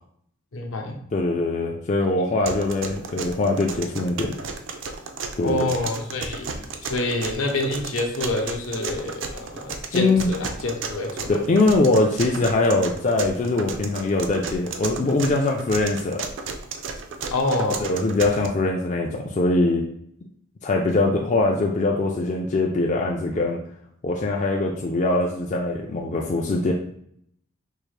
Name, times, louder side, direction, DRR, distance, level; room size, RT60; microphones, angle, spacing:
voice 1, 0.5-0.9 2.4-2.6 5.4-6.5 6.8-11.4 17.2-17.9, left 2 dB, 70° left, 2 dB, 0.8 m, -27 dB
voice 2, 1.1-4.4 5.4-5.7 9.9-10.3 11.3-16.3 17.8-19.8 20.6-23.6 24.0-26.7, left 2 dB, 35° left, 0 dB, 0.3 m, -22 dB
sound 1, 2.5-18.5, right 4 dB, 60° right, 0.4 m, -34 dB
4.5 x 2.3 x 3.2 m, 0.69 s
head